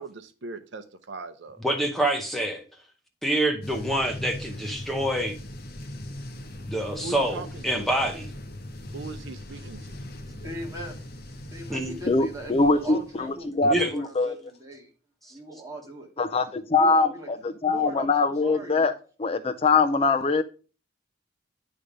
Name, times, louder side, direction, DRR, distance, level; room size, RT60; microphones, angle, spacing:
voice 1, 0.0-1.6 7.0-7.9 8.9-10.0, right 3 dB, 70° right, 0.7 m, -40 dB
voice 2, 1.6-2.6 3.2-5.4 6.7-8.3 11.7-11.9 13.6-13.9 15.2-15.3, right 1 dB, ahead, 0.8 m, -26 dB
sound 1, 3.6-13.5, left 1 dB, 50° left, 0.9 m, -40 dB
voice 3, 10.4-11.2 11.5-14.9 15.3-16.1 16.7-17.3 17.6-18.9, right 1 dB, 15° right, 1.9 m, -39 dB
voice 4, 12.1-14.3 16.2-18.9 19.2-20.4, left 3 dB, 30° left, 0.4 m, -23 dB
9.9 x 3.4 x 5.1 m
head